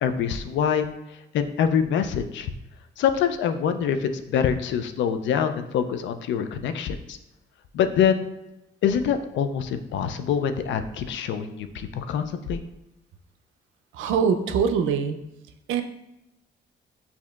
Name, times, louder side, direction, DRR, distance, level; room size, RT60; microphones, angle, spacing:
voice 1, 0.0-0.9 1.3-2.5 3.0-7.2 7.7-8.3 8.8-12.6, left 8 dB, 70° left, 9 dB, 0.4 m, -25 dB
voice 2, 13.9-15.2 15.7-15.8, right 6 dB, 80° right, 7 dB, 0.4 m, -23 dB
6.3 x 2.8 x 2.3 m, 0.91 s
cardioid pair, 90°, 20 cm